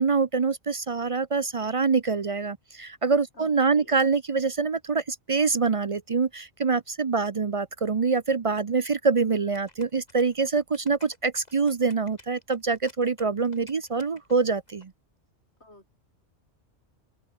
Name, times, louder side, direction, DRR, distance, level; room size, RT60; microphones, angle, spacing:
voice 1, 0.0-14.9, right 4 dB, 40° right, 0.5 m, -25 dB
voice 2, 3.3-4.0 15.6-15.9, left 1 dB, 65° left, 7.9 m, -51 dB
sound 1, 9.5-14.8, left 2 dB, 35° left, 3.1 m, -54 dB
open air
omnidirectional pair, 1.2 m